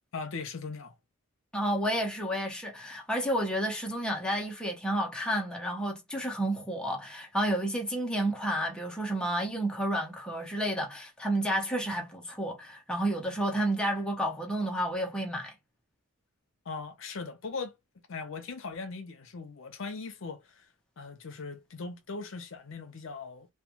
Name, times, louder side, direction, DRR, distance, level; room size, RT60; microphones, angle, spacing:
voice 1, 0.1-0.9 16.7-17.7 18.1-20.6 21.0-23.5, left 4 dB, 65° left, 0.6 m, -39 dB
voice 2, 1.5-15.5, right 1 dB, 5° left, 0.5 m, -31 dB
2.2 x 2.1 x 2.9 m
head